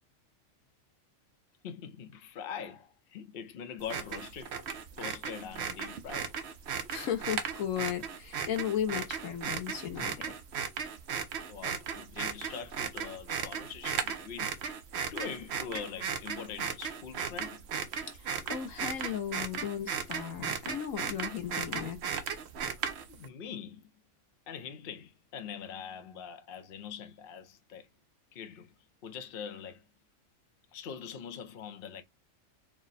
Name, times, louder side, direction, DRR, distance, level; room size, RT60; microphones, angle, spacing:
voice 1, 1.6-4.6 5.0-6.3 11.5-14.6 15.1-17.7 23.1-23.9 24.5-27.9 28.3-28.7 29.0-29.9 30.7-32.0, left 7 dB, 50° left, 0.8 m, -43 dB
sound 1, 3.8-23.3, right 7 dB, 60° right, 1.0 m, -36 dB
voice 2, 6.9-10.3 18.1-22.0, left 9 dB, 90° left, 1.4 m, -35 dB
4.6 x 2.1 x 4.1 m
omnidirectional pair, 1.3 m